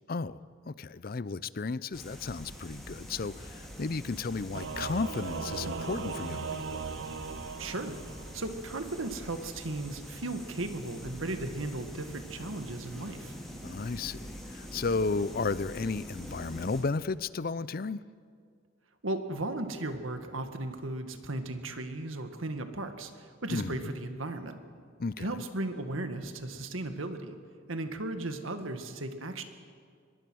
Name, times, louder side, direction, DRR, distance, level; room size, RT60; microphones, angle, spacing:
voice 1, 0.1-6.8 13.6-18.0 23.5-23.9 25.0-25.3, left 4 dB, 45° left, 17 dB, 0.5 m, -34 dB
sound 1, 1.9-16.8, equal, ahead, 3.7 m, -45 dB
Singing / Musical instrument, 4.5-8.6, right 5 dB, 65° right, 0.7 m, -38 dB
voice 2, 7.6-7.9 8.3-13.3 19.0-24.6 25.2-27.4 27.7-29.4, right 2 dB, 80° right, 7 dB, 1.8 m, -36 dB
23.5 x 21.5 x 6.3 m, 2.1 s
head